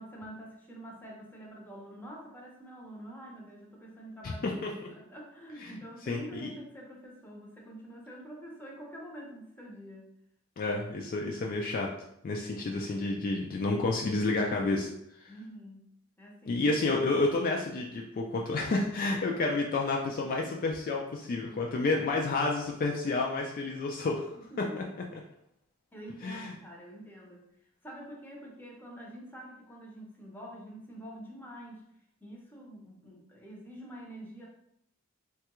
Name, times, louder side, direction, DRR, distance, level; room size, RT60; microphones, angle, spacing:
voice 1, 0.0-4.6 4.9-10.1 15.3-15.9 16.2-16.6 24.3-24.9 25.9-27.5 27.8-31.8 32.2-34.5, equal, 10° left, -2 dB, 0.6 m, -46 dB
voice 2, 4.2-4.7 5.6-5.7 6.1-6.5 10.6-11.9 12.2-14.9 15.2-15.3 16.5-24.4 26.2-26.5, left 3 dB, 45° left, 0 dB, 0.3 m, -30 dB
3.2 x 2.3 x 2.9 m, 0.76 s
head